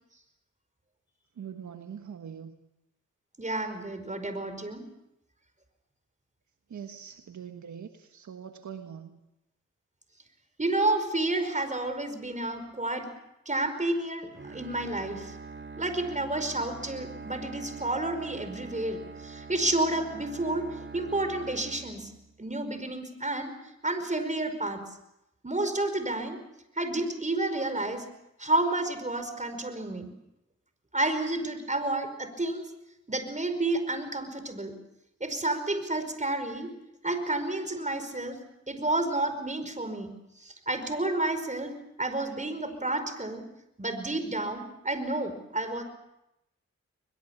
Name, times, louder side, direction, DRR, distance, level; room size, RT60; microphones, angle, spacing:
voice 1, 1.4-2.5 6.7-9.2, right 8 dB, 80° right, 6 dB, 1.5 m, -42 dB
voice 2, 3.4-4.9 10.6-13.1 13.4-15.3 15.8-20.7 20.9-22.1 22.4-23.5 23.8-24.8 25.4-26.4 26.8-28.1 28.4-30.1 30.9-32.7 33.1-34.8 35.2-36.7 37.0-38.4 38.7-40.1 40.4-41.7 42.0-43.5 43.8-45.8, right 2 dB, 25° right, 9 dB, 5.1 m, -30 dB
Bowed string instrument, 14.3-22.5, right 4 dB, 40° right, 2.2 m, -44 dB
22.5 x 21.5 x 7.3 m, 0.87 s
cardioid pair, 45°, 29 cm